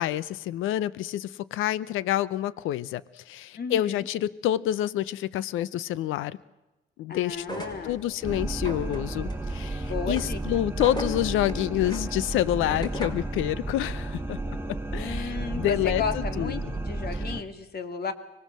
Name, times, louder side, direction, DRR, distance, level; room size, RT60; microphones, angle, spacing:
voice 1, 0.0-6.4 7.0-14.4 14.9-16.5 17.1-17.2, left 13 dB, 90° left, 19 dB, 0.7 m, -28 dB
voice 2, 3.6-4.0 7.1-8.0 9.9-10.6 14.9-18.1, left 5 dB, 50° left, 9 dB, 2.4 m, -34 dB
sound 1, 7.4-13.3, right 1 dB, 20° left, 4.8 m, -40 dB
sound 2, 8.2-17.4, right 2 dB, 10° right, 1.4 m, -32 dB
24.5 x 19.5 x 7.5 m, 1.1 s
cardioid pair, 90°, 20 cm